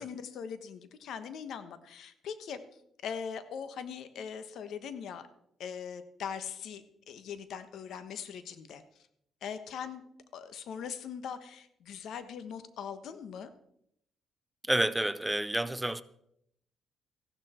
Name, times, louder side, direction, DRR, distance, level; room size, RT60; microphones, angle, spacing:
voice 1, 0.0-2.6 3.0-5.3 5.6-8.8 9.4-10.0 10.3-13.5, left 7 dB, 75° left, 1.3 m, -41 dB
voice 2, 14.7-16.0, right 1 dB, 10° right, 0.6 m, -29 dB
15.5 x 12.0 x 4.4 m
cardioid pair, 90°, 0 cm